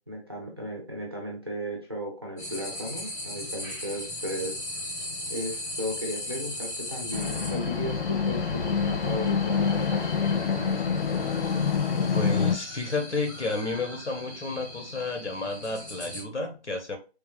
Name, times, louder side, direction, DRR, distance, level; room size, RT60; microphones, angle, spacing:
voice 1, 0.1-4.6 5.3-10.7, equal, 25° right, 0.5 m, -35 dB
sound 1, 2.4-16.2, left 1 dB, 15° left, 0.9 m, -38 dB
sound 2, 7.1-12.6, left 6 dB, 60° left, 0.5 m, -26 dB
voice 2, 12.1-17.0, left 3 dB, 85° left, 1.0 m, -31 dB
3.5 x 2.4 x 2.4 m
figure-of-eight pair, 150°, 34 cm